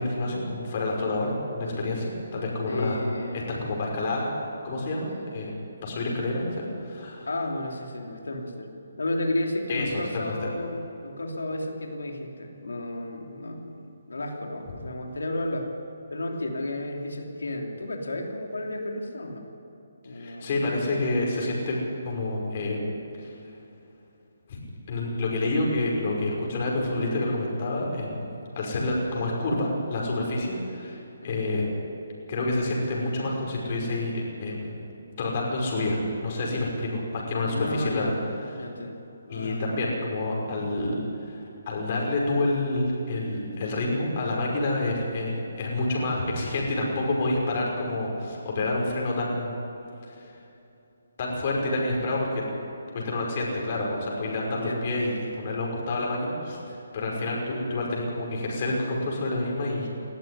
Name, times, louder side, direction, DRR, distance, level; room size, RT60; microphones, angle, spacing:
voice 1, 0.0-3.0 3.3-4.3 4.6-5.5 5.8-7.3 9.7-10.3 20.1-22.8 23.2-23.3 24.5-24.6 24.9-28.3 28.6-31.7 32.3-34.1 34.4-34.7 35.2-38.1 39.3-49.5 50.1-50.3 51.2-52.4 52.9-59.9, left 2 dB, 40° left, -2 dB, 5.6 m, -28 dB
voice 2, 2.7-3.4 7.3-8.7 9.0-15.7 16.1-19.5 20.0-20.5 31.2-31.4 37.5-38.1 38.5-39.0 39.3-39.8 54.5-54.9, left 1 dB, 85° left, 2 dB, 3.2 m, -32 dB
20.0 x 14.0 x 9.7 m, 2.8 s
hypercardioid pair, 155°, 0 cm